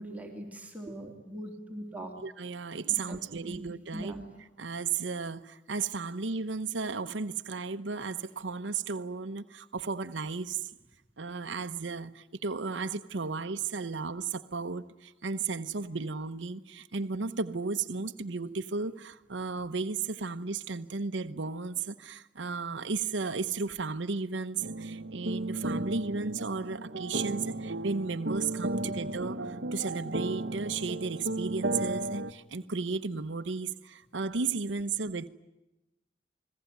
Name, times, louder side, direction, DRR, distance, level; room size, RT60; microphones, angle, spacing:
voice 1, 0.0-2.1 2.9-3.2 3.4-3.6 3.9-4.2 28.8-28.9, right 1 dB, 10° right, 3.4 m, -41 dB
voice 2, 2.2-4.2 4.6-10.7 11.2-35.3, right 4 dB, 90° right, 0.9 m, -34 dB
sound 1, 24.6-32.3, right 2 dB, 65° right, 1.2 m, -34 dB
28.5 x 21.0 x 9.4 m
head